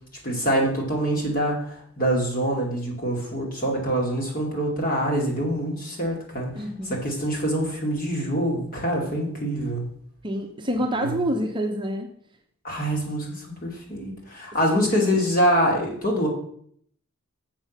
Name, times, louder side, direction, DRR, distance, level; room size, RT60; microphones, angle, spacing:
voice 1, 0.2-6.5 6.9-9.8 11.0-11.2 12.6-16.3, equal, 40° left, -1 dB, 2.5 m, -25 dB
voice 2, 6.5-7.0 10.2-12.1 14.7-15.1, equal, 20° right, 2 dB, 0.8 m, -27 dB
7.3 x 6.6 x 5.7 m, 0.64 s
head